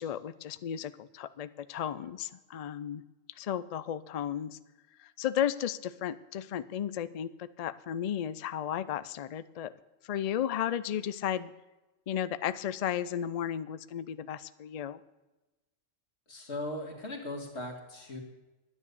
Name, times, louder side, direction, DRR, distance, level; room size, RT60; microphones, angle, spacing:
voice 1, 0.0-3.0 3.4-4.6 5.0-9.7 10.0-11.5 12.1-15.0, left 10 dB, 80° left, 15 dB, 0.3 m, -34 dB
voice 2, 16.3-18.2, left 1 dB, 60° left, 2 dB, 2.4 m, -38 dB
10.5 x 9.8 x 6.9 m, 1.1 s
omnidirectional pair, 1.3 m